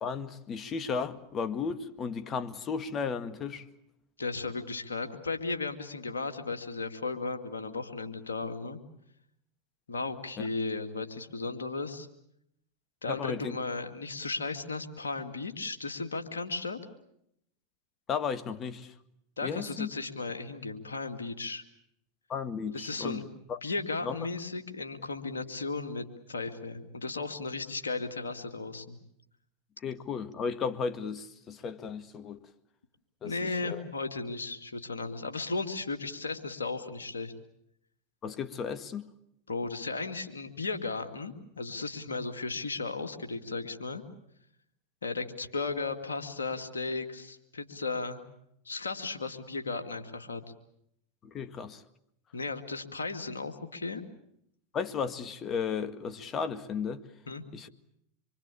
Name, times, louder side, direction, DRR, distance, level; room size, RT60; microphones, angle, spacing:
voice 1, 0.0-3.6 10.4-10.5 13.1-13.5 18.1-18.9 19.4-19.9 22.3-23.2 23.5-23.6 24.1-24.2 29.8-32.4 33.2-33.8 38.2-39.1 51.2-51.8 54.7-57.0 57.5-57.7, left 6 dB, 35° left, 2.0 m, -34 dB
voice 2, 4.2-8.8 9.9-12.1 13.0-16.8 19.4-21.6 22.7-23.3 23.6-29.0 33.2-37.3 39.5-44.0 45.0-48.2 48.6-50.4 52.3-54.0 57.3-57.4, left 3 dB, 90° left, 2.5 m, -35 dB
26.0 x 24.5 x 8.6 m
hypercardioid pair, 90°, 0 cm